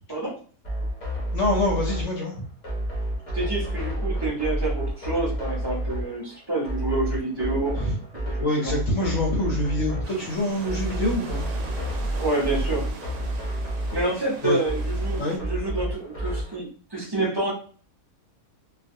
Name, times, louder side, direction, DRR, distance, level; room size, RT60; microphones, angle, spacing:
sound 1, 0.6-16.6, right 1 dB, 40° left, 0.5 m, -30 dB
voice 1, 1.3-2.5 7.7-8.0 8.4-11.4 11.9-12.0 14.4-14.6 15.2-15.4, left 1 dB, 65° left, -1 dB, 0.8 m, -26 dB
voice 2, 3.3-7.8 8.3-8.7 12.2-12.9 13.9-17.5, right 2 dB, 25° right, -4 dB, 0.5 m, -28 dB
sound 2, 10.0-15.4, right 4 dB, 75° right, 1.0 m, -41 dB
2.3 x 2.3 x 2.6 m, 0.43 s
omnidirectional pair, 1.6 m